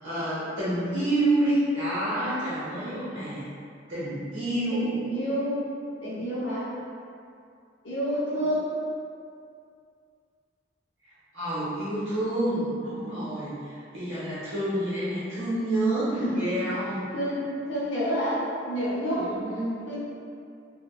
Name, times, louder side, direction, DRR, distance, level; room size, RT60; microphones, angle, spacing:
voice 1, 0.0-3.4 3.9-4.9 11.3-17.0 19.1-19.7, right 1 dB, 90° right, -11 dB, 0.8 m, -28 dB
voice 2, 4.7-5.7 6.0-6.7 7.8-8.7 16.1-16.4 17.1-19.4 19.9-20.0, equal, 70° left, -9 dB, 0.6 m, -29 dB
3.3 x 2.1 x 2.3 m, 2.4 s
head